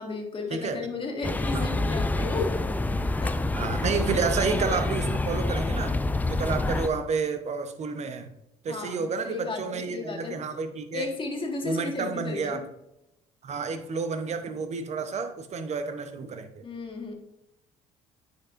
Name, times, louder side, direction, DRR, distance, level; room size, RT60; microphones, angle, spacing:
voice 1, 0.0-2.6 3.2-3.4 8.7-10.4 10.9-12.6 16.6-17.1, left 3 dB, 35° left, 2 dB, 1.7 m, -34 dB
sound 1, 1.2-6.9, left 2 dB, 10° left, 0.4 m, -27 dB
voice 2, 3.6-5.9 6.3-8.3 8.6-11.1 11.6-12.6 13.4-16.6, right 5 dB, 45° right, 9 dB, 0.9 m, -30 dB
9.4 x 4.7 x 2.5 m, 0.87 s
supercardioid pair, 70°, 16 cm